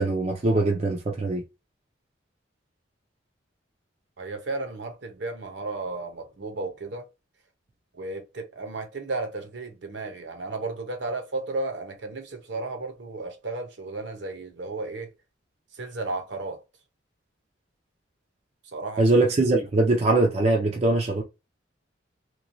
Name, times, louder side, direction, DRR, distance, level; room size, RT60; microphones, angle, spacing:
voice 1, 0.0-1.4 19.0-21.2, right 2 dB, 35° right, 0.5 m, -22 dB
voice 2, 4.2-7.0 7.9-15.1 15.8-16.6 18.7-19.0, right 3 dB, 60° right, 0.8 m, -33 dB
3.0 x 2.3 x 2.6 m
head